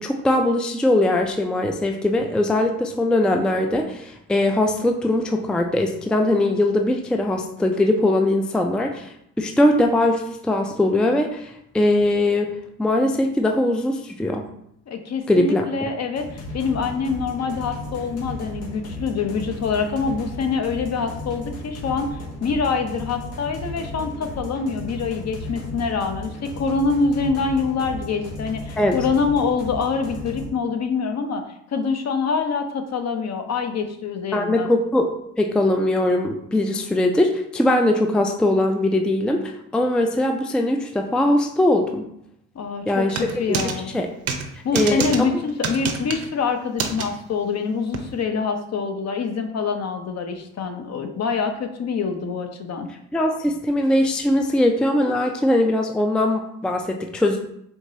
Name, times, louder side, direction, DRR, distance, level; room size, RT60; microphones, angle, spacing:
voice 1, 0.0-9.1 9.4-12.5 12.8-14.5 15.3-15.9 28.8-29.0 34.3-35.1 35.4-42.1 42.9-43.6 43.9-44.1 44.7-45.3 53.1-57.4, left 1 dB, 5° left, 3 dB, 0.4 m, -21 dB
voice 2, 14.9-31.4 31.7-34.7 42.5-44.0 44.6-52.9, left 5 dB, 45° left, 6 dB, 0.7 m, -25 dB
sound 1, 16.2-30.5, left 1 dB, 80° left, 1.1 m, -35 dB
sound 2, 43.1-43.8 44.3-44.4 44.8-45.2 45.6-46.3 46.8-47.1 47.9-48.0, right 5 dB, 40° right, 0.7 m, -26 dB
4.6 x 2.9 x 2.8 m, 0.74 s
supercardioid pair, 65°, 36 cm